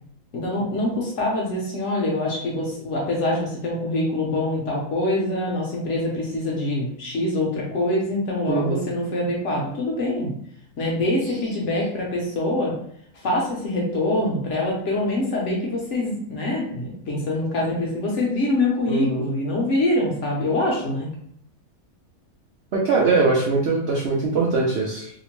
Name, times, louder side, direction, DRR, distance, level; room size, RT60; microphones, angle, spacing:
voice 1, 0.3-10.4 10.8-12.8 13.1-21.1, left 1 dB, 60° left, -3 dB, 0.9 m, -24 dB
voice 2, 8.5-8.8 18.9-19.2 22.7-25.1, right 3 dB, 80° right, -3 dB, 0.5 m, -21 dB
2.8 x 2.1 x 2.9 m, 0.66 s
omnidirectional pair, 1.7 m